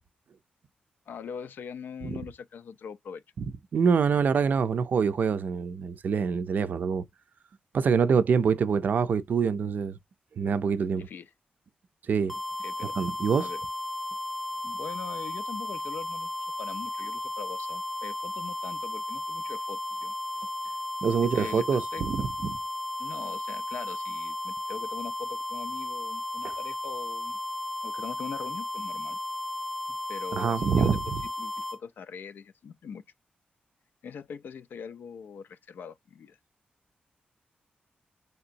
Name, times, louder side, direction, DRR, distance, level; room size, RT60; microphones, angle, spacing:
voice 1, 1.1-3.2 8.0-8.2 11.0-11.3 12.6-13.0 13.4-13.6 14.6-16.3 16.6-20.1 21.3-22.3 23.0-27.4 27.8-29.2 29.9-31.0 31.4-33.0 34.0-36.4, left 6 dB, 85° left, 0.4 m, -42 dB
voice 2, 3.4-7.1 7.7-10.0 10.4-11.1 12.1-12.4 13.0-13.5 21.0-22.6 26.4-26.5 30.3-31.2, right 6 dB, 65° right, 0.4 m, -25 dB
sound 1, 12.3-31.8, left 1 dB, 5° left, 0.4 m, -34 dB
3.4 x 2.8 x 2.6 m
wide cardioid pair, 110°, 3 cm